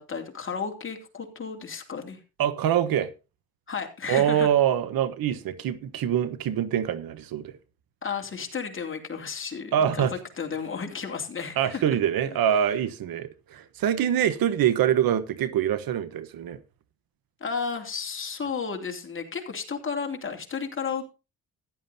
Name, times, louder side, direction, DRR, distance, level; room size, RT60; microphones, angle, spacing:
voice 1, 0.0-2.2 3.7-4.5 8.0-12.0 12.2-12.4 17.4-21.0, left 6 dB, 35° left, 2.9 m, -33 dB
voice 2, 2.4-3.1 4.1-7.6 9.7-10.1 11.6-16.6, right 10 dB, 75° right, 1.2 m, -24 dB
15.0 x 11.0 x 2.8 m
cardioid pair, 90°, 36 cm